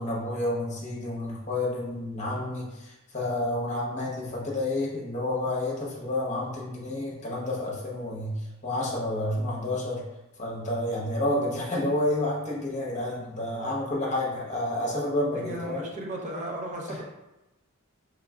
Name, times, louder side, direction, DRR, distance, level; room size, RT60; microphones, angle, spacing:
voice 1, 0.0-10.0 10.4-15.9 16.9-17.0, left 1 dB, 35° left, -3 dB, 1.0 m, -30 dB
voice 2, 15.3-17.0, right 1 dB, 35° right, -2 dB, 0.7 m, -35 dB
4.6 x 3.5 x 2.3 m, 1.0 s
head